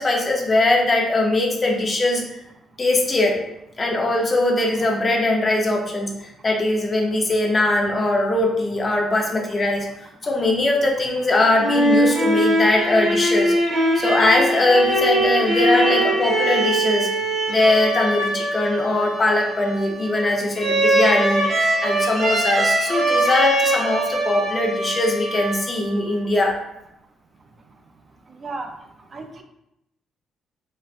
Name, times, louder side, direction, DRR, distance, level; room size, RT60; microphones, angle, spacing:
voice 1, 0.0-2.2 2.8-3.4 3.8-13.6 14.0-17.1 17.5-26.5, left 2 dB, 30° left, 0 dB, 0.6 m, -21 dB
sound 1, 11.3-26.0, right 1 dB, 80° right, 1.5 m, -22 dB
voice 2, 29.1-29.4, right 3 dB, 40° right, 5 dB, 0.4 m, -33 dB
3.9 x 2.1 x 2.5 m, 0.83 s
cardioid pair, 90°, 0 cm